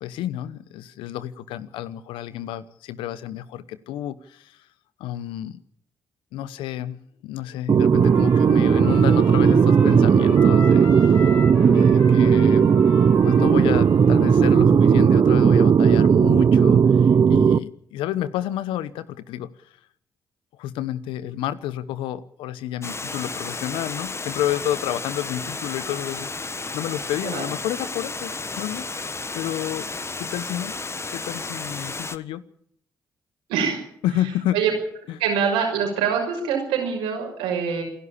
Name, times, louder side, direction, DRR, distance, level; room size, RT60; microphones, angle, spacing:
voice 1, 0.0-4.7 5.0-5.6 6.3-11.3 11.6-12.7 13.2-19.7 20.6-28.9 29.3-29.9 30.2-30.7 31.1-32.4 34.0-34.6 35.1-35.2, left 12 dB, 80° left, 16 dB, 1.0 m, -30 dB
sound 1, 7.7-17.6, right 7 dB, 50° right, 0.7 m, -16 dB
Trumpet, 8.0-14.7, left 3 dB, 60° left, 7.2 m, -38 dB
Water, 22.8-32.2, left 3 dB, 30° left, 1.4 m, -33 dB
voice 2, 33.5-33.8 34.5-34.7 35.2-37.8, right 7 dB, 85° right, 2 dB, 6.1 m, -24 dB
28.0 x 11.5 x 8.7 m, 0.66 s
hypercardioid pair, 40°, 9 cm